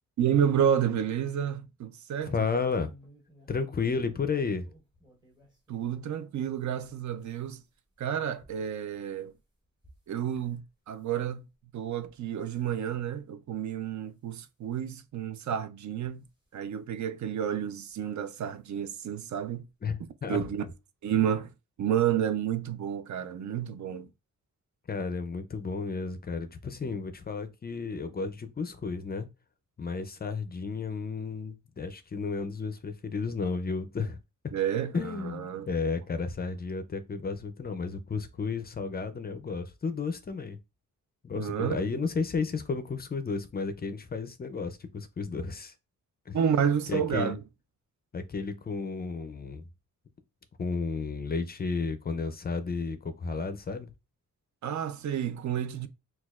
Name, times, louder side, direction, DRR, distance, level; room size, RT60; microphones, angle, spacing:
voice 1, 0.2-2.3 5.7-7.6 8.0-9.3 10.1-11.5 11.7-16.2 16.5-19.7 20.3-20.7 21.0-21.5 21.8-24.1 34.5-35.7 41.3-42.1 46.3-47.4 54.6-55.9, right 9 dB, 65° right, 0.4 m, -30 dB
voice 2, 2.3-2.9 3.5-4.7 19.8-20.4 24.9-29.3 29.8-34.2 34.9-40.6 41.2-45.7 46.3-46.4 46.9-47.4 48.1-49.7 50.6-53.9, left 4 dB, 30° left, 0.4 m, -32 dB
sound 1, 2.6-6.0 6.4-10.6 10.9-11.3 11.8-12.2 12.5-12.8 13.4-13.5 13.8-13.9 15.1-15.2 15.9-16.7 17.9-18.1 18.4-18.5 18.9-19.0, equal, 15° right, 1.0 m, -60 dB
6.0 x 2.3 x 2.3 m
wide cardioid pair, 160°, 32 cm